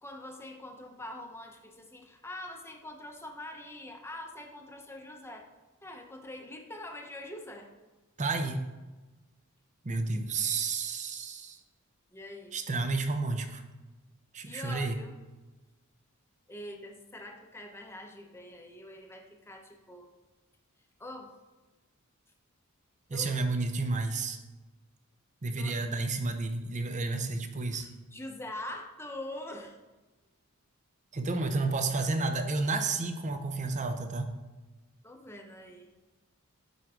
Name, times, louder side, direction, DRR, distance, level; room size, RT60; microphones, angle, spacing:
voice 1, 0.0-5.5 5.8-7.7 12.1-12.6 14.4-15.2 16.5-20.1 21.0-21.3 23.1-23.4 25.6-25.8 27.7-29.8 35.0-35.9, left 1 dB, 10° left, 3 dB, 0.8 m, -44 dB
voice 2, 8.2-8.7 9.8-11.6 12.5-13.6 14.3-15.0 23.1-24.4 25.4-27.9 31.1-34.4, right 3 dB, 35° right, 7 dB, 0.7 m, -31 dB
9.4 x 4.6 x 3.7 m, 1.2 s
head